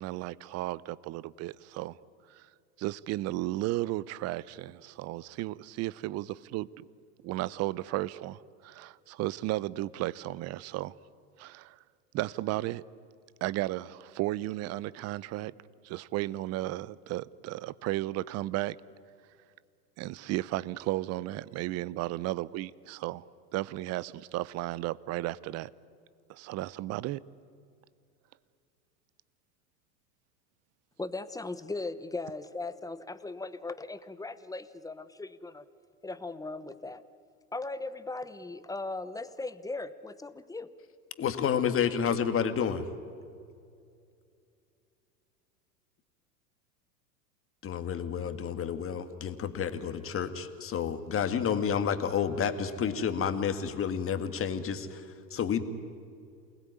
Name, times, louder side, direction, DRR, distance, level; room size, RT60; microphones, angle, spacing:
voice 1, 0.0-2.0 2.3-2.5 2.8-6.9 7.2-10.9 11.4-11.8 12.1-12.8 13.4-15.5 15.8-18.8 20.0-23.2 23.5-25.7 26.3-27.2, right 17 dB, 30° right, 0.7 m, -34 dB
voice 2, 31.0-35.7 36.0-37.0 37.5-40.7, left 3 dB, 5° left, 1.0 m, -38 dB
voice 3, 41.2-42.8 47.6-55.0 55.3-55.6, left 7 dB, 25° left, 2.0 m, -30 dB
28.0 x 20.5 x 9.7 m
hypercardioid pair, 100°, 49 cm